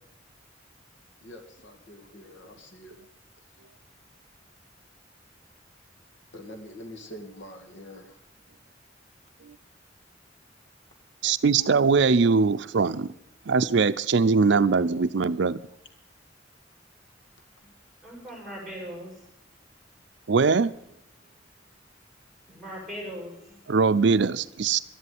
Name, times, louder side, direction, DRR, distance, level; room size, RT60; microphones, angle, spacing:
voice 1, 1.2-3.0 6.3-8.1, equal, 70° left, 6 dB, 2.0 m, -45 dB
voice 2, 11.2-13.1 13.5-15.6 20.3-20.7 23.7-24.8, right 4 dB, 70° right, 13 dB, 0.5 m, -21 dB
voice 3, 18.0-19.3 22.5-23.6, equal, ahead, -1 dB, 7.8 m, -40 dB
12.5 x 11.5 x 9.3 m, 0.76 s
head